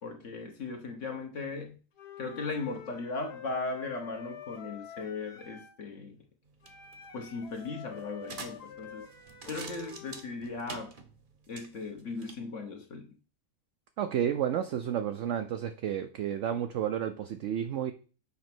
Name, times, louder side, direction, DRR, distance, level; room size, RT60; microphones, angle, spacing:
voice 1, 0.0-1.8 2.2-6.2 7.1-9.0 9.5-10.9 11.5-13.2, left 3 dB, 55° left, 1.3 m, -37 dB
Wind instrument woodwind instrument, 2.0-5.8 6.6-10.3, left 8 dB, 90° left, 1.9 m, -47 dB
sound 1, 6.5-12.4, right 4 dB, 40° right, 0.9 m, -48 dB
voice 2, 14.0-17.9, right 9 dB, 65° right, 0.7 m, -31 dB
7.1 x 3.2 x 6.0 m
omnidirectional pair, 1.6 m